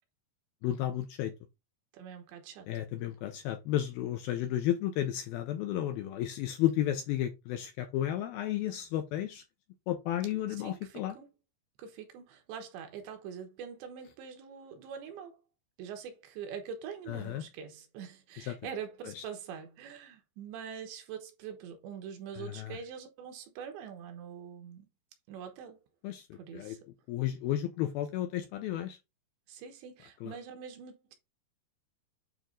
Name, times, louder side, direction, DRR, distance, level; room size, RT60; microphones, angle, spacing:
voice 1, 0.6-1.3 2.7-9.4 9.9-11.1 17.1-17.4 18.4-18.6 19.1-19.2 22.4-22.8 26.0-26.8 27.1-29.0 30.2-30.4, left 12 dB, 85° left, 2.2 m, -33 dB
voice 2, 1.9-2.7 10.6-11.3 11.8-15.4 15.8-24.9 25.3-25.8 26.4-26.8 29.5-31.2, right 7 dB, 85° right, 3.5 m, -44 dB
9.0 x 3.0 x 3.8 m
omnidirectional pair, 5.0 m